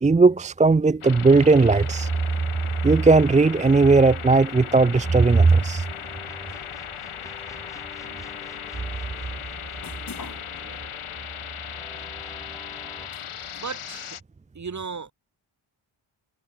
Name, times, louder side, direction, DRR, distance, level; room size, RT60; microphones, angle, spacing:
voice 1, 0.0-2.1 2.8-5.9, right 3 dB, 20° right, 0.3 m, -17 dB
sound 1, 1.0-14.2, left 9 dB, 80° left, 1.7 m, -37 dB
sound 2, 1.3-13.6, left 5 dB, 40° left, 4.8 m, -50 dB
sound 3, 4.9-13.1, left 1 dB, 5° left, 3.3 m, -49 dB
voice 2, 8.0-8.4 10.6-10.8 13.6-14.2 14.5-15.1, right 5 dB, 35° right, 1.7 m, -36 dB
wide cardioid pair, 175°, 49 cm